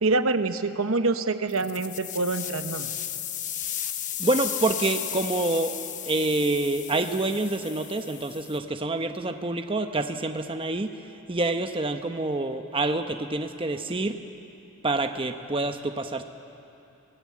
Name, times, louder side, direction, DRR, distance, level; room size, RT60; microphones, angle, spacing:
voice 1, 0.0-2.9, right 3 dB, 75° right, 9 dB, 1.0 m, -26 dB
sound 1, 1.5-8.6, left 10 dB, 35° left, 0.9 m, -34 dB
voice 2, 4.2-5.8 6.1-10.9 11.3-14.2 14.8-16.2, right 2 dB, 25° right, 6 dB, 0.9 m, -27 dB
26.0 x 18.0 x 8.5 m, 2.9 s
head